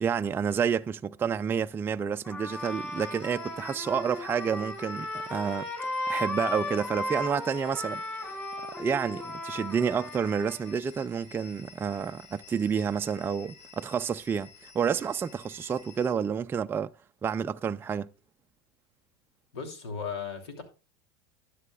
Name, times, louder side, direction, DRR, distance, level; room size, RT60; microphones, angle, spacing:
voice 1, 0.0-8.0 8.3-8.4 8.8-16.9 17.2-18.1, right 7 dB, 15° right, 0.4 m, -29 dB
Trumpet, 2.2-10.7, left 1 dB, 20° left, 5.9 m, -36 dB
sound 1, 2.5-16.1, left 6 dB, 55° left, 5.0 m, -52 dB
voice 2, 19.5-20.6, left 6 dB, 85° left, 2.9 m, -36 dB
12.5 x 10.0 x 2.4 m
supercardioid pair, 120°, 13 cm